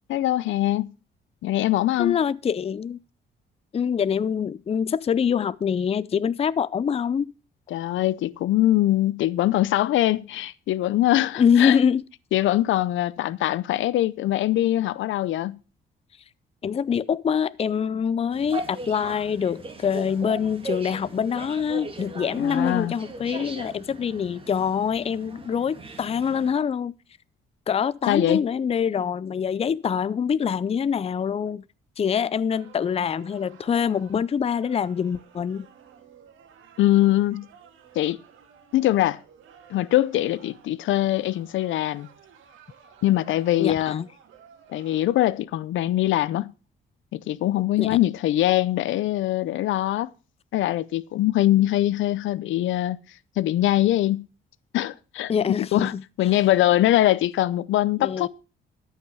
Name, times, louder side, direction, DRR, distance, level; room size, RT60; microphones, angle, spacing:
voice 1, 0.1-0.9 1.4-2.2 7.7-11.8 12.3-15.6 22.4-22.9 28.1-28.4 36.8-37.5 38.0-38.2 38.7-39.2 39.7-42.1 43.0-44.0 44.7-46.5 47.1-50.1 50.5-53.0 53.4-54.3 54.7-55.3 55.6-58.3, left 14 dB, 75° left, 0.6 m, -22 dB
voice 2, 2.0-3.0 3.7-7.3 11.4-12.0 16.6-26.9 27.7-31.6 32.0-35.7 43.6-44.1 47.8-48.0 55.3-56.3 58.0-58.3, left 7 dB, 30° left, 0.5 m, -25 dB
sound 1, 18.3-26.5, right 3 dB, 25° right, 2.2 m, -38 dB
sound 2, 32.5-45.0, right 8 dB, 80° right, 2.1 m, -53 dB
13.0 x 5.7 x 6.2 m
cardioid pair, 90°, 20 cm